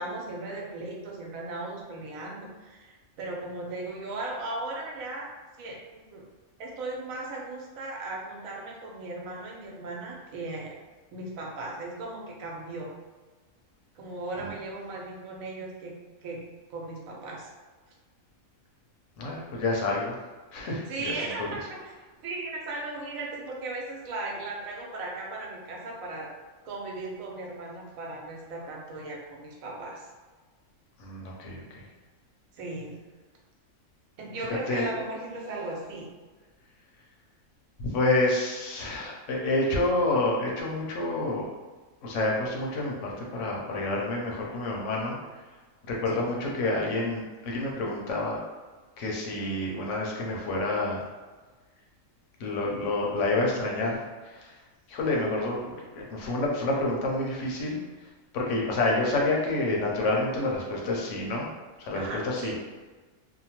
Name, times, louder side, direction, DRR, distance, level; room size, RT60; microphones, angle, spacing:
voice 1, 0.0-5.3 5.6-6.3 6.6-10.8 11.1-12.9 14.0-15.9 16.2-16.4 16.7-17.5 20.9-21.8 22.2-26.3 26.6-30.0 32.6-33.0 34.2-36.1 46.1-46.2 61.9-62.6, right 2 dB, 90° right, -2 dB, 1.1 m, -37 dB
voice 2, 19.2-20.2 20.5-21.1 21.4-21.5 31.0-31.8 34.4-34.9 37.8-41.5 42.0-45.2 45.8-48.4 49.0-51.1 52.4-54.5 54.9-57.8 58.3-61.5 61.8-62.5, left 2 dB, 70° left, -2 dB, 0.9 m, -28 dB
2.7 x 2.1 x 2.9 m, 1.3 s
omnidirectional pair, 1.4 m